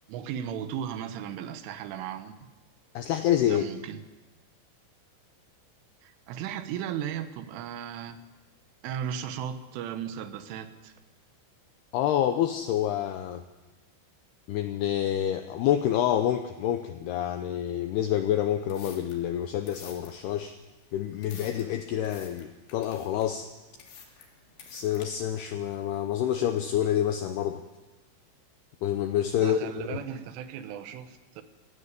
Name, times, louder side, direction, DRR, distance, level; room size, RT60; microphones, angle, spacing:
voice 1, 0.1-2.4 3.5-4.0 6.0-8.2 8.8-10.9 29.4-31.4, right 9 dB, 80° right, 10 dB, 3.6 m, -36 dB
voice 2, 3.0-3.7 11.9-13.4 14.5-20.5 20.9-23.5 24.7-27.6 28.8-30.0, left 11 dB, 85° left, 8 dB, 2.3 m, -27 dB
sound 1, 18.5-25.0, left 6 dB, 55° left, 4.3 m, -51 dB
17.0 x 16.0 x 10.0 m, 1.2 s
omnidirectional pair, 5.7 m